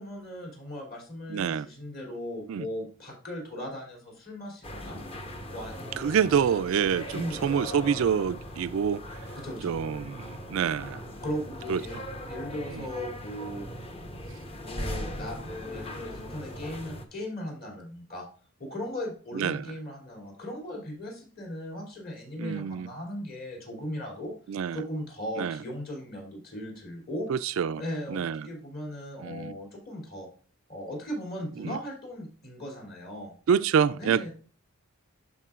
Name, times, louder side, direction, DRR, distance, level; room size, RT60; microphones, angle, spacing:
voice 1, 0.0-5.0 5.5-6.4 7.1-7.4 9.3-9.8 11.1-12.0 12.3-13.6 14.6-18.3 18.6-24.3 24.7-27.3 27.8-30.3 30.7-33.4 34.0-34.3, equal, 45° left, 2.9 m, -38 dB
voice 2, 1.3-1.7 2.5-2.7 6.0-9.2 9.6-11.0 11.7-12.0 12.7-12.9 19.3-19.6 22.4-22.9 24.5-24.8 25.4-25.6 27.3-27.8 28.1-28.5 29.2-29.6 31.6-31.8 33.5-34.3, right 7 dB, 65° right, 0.3 m, -27 dB
sound 1, 4.6-17.0, equal, 25° left, 0.9 m, -39 dB
12.5 x 4.6 x 2.4 m
head